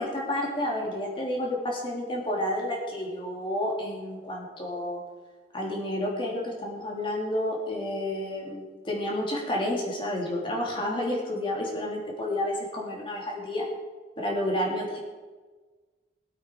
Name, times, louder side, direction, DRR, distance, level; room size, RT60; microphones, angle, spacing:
voice 1, 0.0-5.0 5.5-13.6 14.2-15.0, left 1 dB, 30° left, -2 dB, 3.1 m, -30 dB
20.5 x 8.5 x 4.7 m, 1.4 s
head